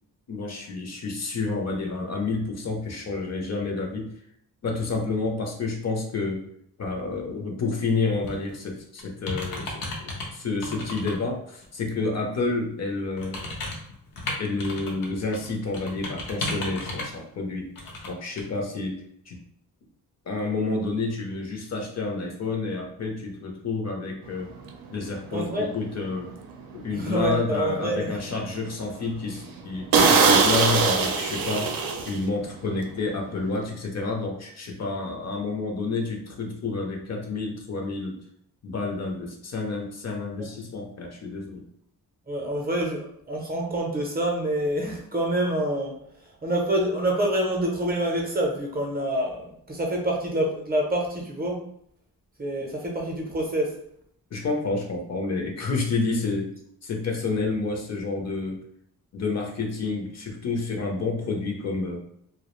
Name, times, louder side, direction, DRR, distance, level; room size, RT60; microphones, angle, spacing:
voice 1, 0.3-4.1 4.6-6.4 6.8-13.4 14.4-17.7 18.1-19.4 20.3-24.5 24.9-26.3 26.7-38.2 38.6-41.6 54.3-56.5 56.8-58.6 59.1-62.0, left 3 dB, 50° left, 2 dB, 0.5 m, -29 dB
sound 1, 8.2-8.5 9.0-10.3 10.6-11.1 11.6-11.7 13.2-15.1 15.3-17.2 17.8-18.1 18.4-18.5, left 2 dB, 90° left, 0.7 m, -33 dB
sound 2, 24.7-24.8 25.3-25.6 26.1-26.2 26.5-26.6 27.1-27.7 28.1-28.2 28.6-28.7 29.0-29.1 29.5-29.6 29.9-32.5 32.7-32.9, right 5 dB, 85° right, 0.5 m, -21 dB
voice 2, 25.3-25.7 26.9-28.2 40.4-40.5 42.3-51.6 52.4-53.8, right 1 dB, 25° right, 0 dB, 0.5 m, -27 dB
2.3 x 2.0 x 2.9 m, 0.69 s
wide cardioid pair, 125°, 34 cm